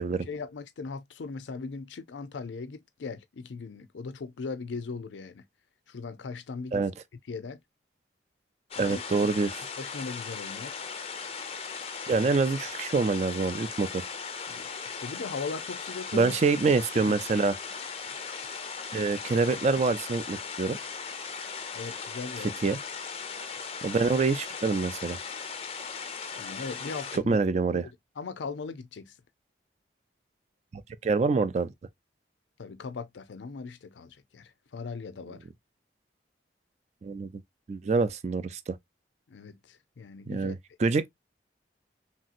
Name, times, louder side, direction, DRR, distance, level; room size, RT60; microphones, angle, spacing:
voice 1, 0.0-5.4 5.9-6.8 7.3-7.6 8.8-9.3 9.8-10.8 14.5-16.3 16.9-17.2 21.7-22.5 26.3-27.4 27.7-27.8 28.2-29.1 32.6-35.4 39.3-40.6, left 4 dB, 85° left, 0.5 m, -39 dB
sound 1, 8.7-27.2, left 5 dB, 30° left, 0.4 m, -38 dB
voice 2, 8.8-9.6 12.1-14.0 16.1-17.6 18.9-20.8 22.6-22.8 23.8-25.2 27.1-27.9 30.7-31.7 37.0-37.3 37.7-38.8 40.3-41.1, right 4 dB, 35° right, 0.3 m, -26 dB
3.1 x 2.7 x 2.4 m
head